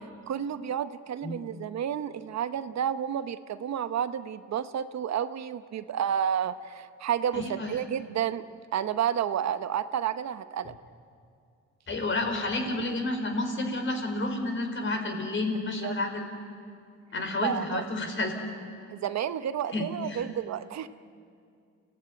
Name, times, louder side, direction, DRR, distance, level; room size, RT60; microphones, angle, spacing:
voice 1, 0.3-8.4 8.7-10.7 15.8-15.9 17.4-17.8 18.9-20.9, right 9 dB, 60° right, 12 dB, 0.9 m, -30 dB
voice 2, 7.3-7.8 11.9-16.2 17.1-18.3 19.7-20.3, left 2 dB, 40° left, 4 dB, 4.7 m, -30 dB
28.0 x 16.5 x 9.7 m, 2.3 s
cardioid pair, 90°, 30 cm